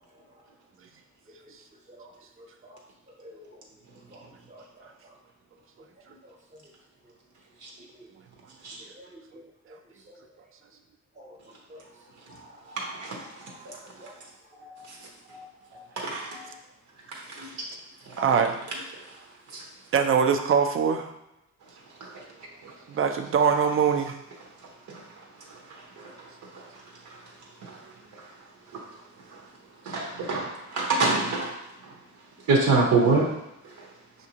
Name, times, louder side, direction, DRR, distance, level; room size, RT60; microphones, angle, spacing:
voice 1, 2.4-2.8 3.2-3.4 4.1-4.2 4.5-4.9 7.9-8.1 9.0-9.4 10.1-10.2 11.2-11.4 11.7-11.8 12.7-13.0 14.0-14.1 14.5-14.8 15.3-15.5 15.7-15.8 16.3-16.6, left 1 dB, 25° right, -1 dB, 0.8 m, -48 dB
voice 2, 12.8-13.7 14.9-15.0 16.0-16.5 17.1-17.5 18.1-18.4 19.5-19.6 22.0-22.2 22.6-22.7 24.9-25.0 25.5-26.7 27.0-27.2 27.6-27.8 28.1-28.3 28.7-28.8 29.3-29.4 29.9-31.9 32.5-33.3 33.6-33.7, right 3 dB, 75° right, -2 dB, 0.9 m, -28 dB
voice 3, 18.2-18.5 19.9-21.1 22.9-24.1, right 6 dB, 45° right, 6 dB, 0.5 m, -22 dB
5.7 x 2.6 x 2.8 m, 0.86 s
wide cardioid pair, 130°, 30 cm